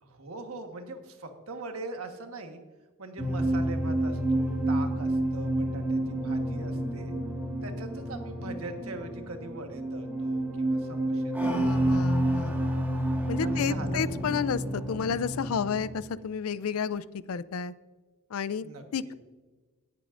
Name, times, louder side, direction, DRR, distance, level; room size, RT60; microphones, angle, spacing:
voice 1, 0.0-2.6 3.0-7.1 7.6-11.9 13.4-14.0 18.6-18.8, right 2 dB, 70° right, 5 dB, 1.4 m, -41 dB
sound 1, 3.2-15.9, right 1 dB, 10° right, 1.7 m, -29 dB
voice 2, 11.4-12.7 13.3-17.7 18.3-18.7 18.9-19.1, left 6 dB, 70° left, 17 dB, 0.4 m, -31 dB
18.0 x 8.3 x 2.5 m, 1.3 s
head